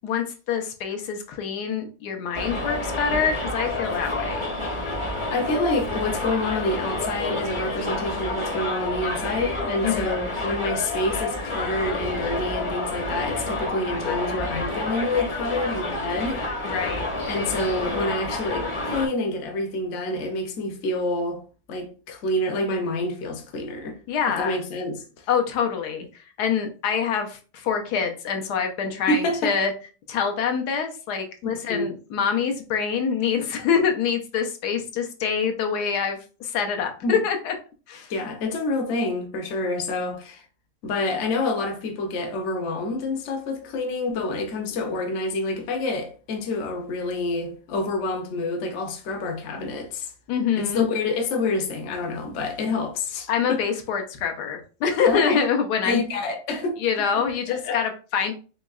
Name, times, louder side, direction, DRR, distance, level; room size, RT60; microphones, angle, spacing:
voice 1, 0.0-4.4 9.8-10.1 16.6-17.1 24.1-24.6 25.3-29.7 30.1-37.5 37.9-38.1 44.7-44.8 50.3-50.8 53.3-56.0 56.8-58.3, left 7 dB, 90° left, 1.3 m, -25 dB
Subway metro underground, 2.3-19.1, left 2 dB, 30° left, 0.5 m, -29 dB
voice 2, 5.3-16.7 17.3-21.4 21.7-24.0 24.3-25.3 29.1-29.6 31.4-31.9 37.0-37.2 38.1-40.4 40.8-50.1 50.6-53.6 55.1-55.4 55.8-56.8 57.5-57.8, left 2 dB, 55° left, 0.8 m, -28 dB
4.5 x 3.0 x 2.3 m
omnidirectional pair, 1.7 m